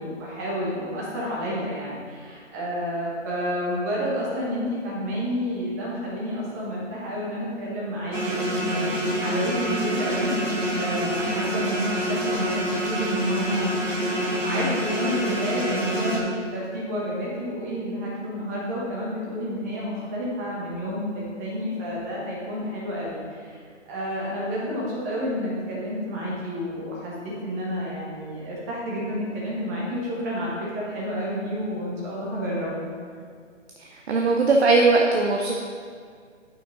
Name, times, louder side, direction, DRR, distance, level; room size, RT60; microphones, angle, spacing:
voice 1, 0.0-8.9 9.2-10.3 10.7-23.6 23.9-32.9, equal, 15° right, -5 dB, 1.1 m, -30 dB
sound 1, 8.1-16.2, equal, 80° right, 1.9 m, -26 dB
voice 2, 34.1-35.6, right 3 dB, 60° right, 1 dB, 0.8 m, -19 dB
8.1 x 5.8 x 4.0 m, 2.1 s
figure-of-eight pair, 160°, 37 cm